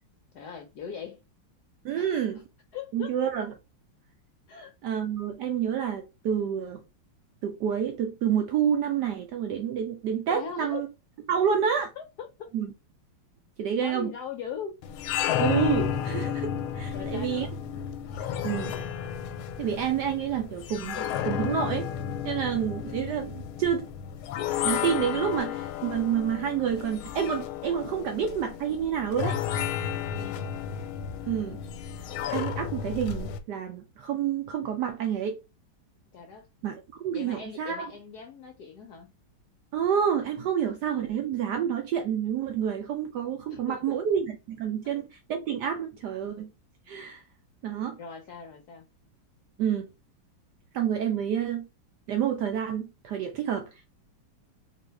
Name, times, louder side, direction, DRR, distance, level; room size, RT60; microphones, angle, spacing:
voice 1, 0.3-1.2 1.9-2.2 2.7-3.2 4.5-4.7 10.3-10.8 12.0-12.5 13.8-14.8 16.9-17.6 30.1-30.5 36.1-36.5 37.1-39.1 43.5-44.0 44.8-45.0 48.0-48.8, left 6 dB, 70° left, 0.9 m, -40 dB
voice 2, 1.8-2.4 2.9-3.5 4.8-6.8 7.4-10.9 11.3-11.9 12.5-12.7 13.6-14.1 15.4-17.5 18.4-18.7 19.6-21.9 22.2-23.9 24.6-29.4 31.3-31.6 32.3-35.4 36.6-37.9 39.7-46.5 46.9-47.2 47.6-48.0 49.6-49.9 50.7-51.7 52.1-53.7, right 8 dB, 75° right, 1.0 m, -28 dB
sound 1, 14.8-33.4, left 9 dB, 90° left, 1.4 m, -32 dB
3.8 x 2.7 x 3.3 m
omnidirectional pair, 2.2 m